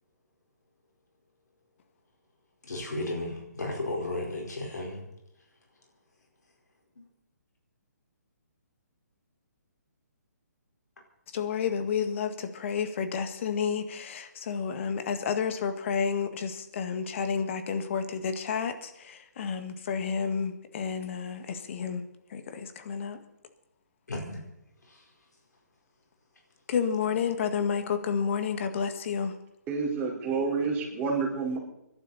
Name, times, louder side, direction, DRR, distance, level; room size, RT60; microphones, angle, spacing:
voice 1, 2.7-5.0 24.1-24.4, left 2 dB, 80° left, 0 dB, 4.8 m, -33 dB
voice 2, 11.3-22.0 22.3-23.2 26.7-29.3, left 6 dB, 45° left, 8 dB, 2.0 m, -30 dB
voice 3, 29.7-31.6, right 4 dB, 20° right, -3 dB, 4.8 m, -29 dB
26.0 x 12.0 x 4.3 m, 0.84 s
hypercardioid pair, 145°, 9 cm